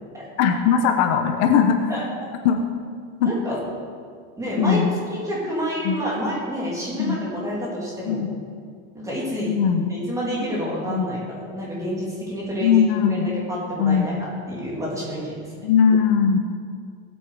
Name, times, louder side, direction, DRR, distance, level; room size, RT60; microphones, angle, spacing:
voice 1, 0.4-1.9 2.4-2.6 3.2-3.3 4.6-4.9 5.8-6.0 6.9-7.2 8.1-8.3 9.5-9.9 10.9-11.1 12.6-13.4 13.8-14.1 15.6-16.4, left 7 dB, 60° left, 4 dB, 1.1 m, -19 dB
voice 2, 3.2-3.6 4.4-4.8 5.1-8.2 8.9-9.5 9.9-12.8 13.1-15.6, equal, 10° right, -6 dB, 3.0 m, -29 dB
18.0 x 8.6 x 5.0 m, 2.1 s
cardioid pair, 170°, 36 cm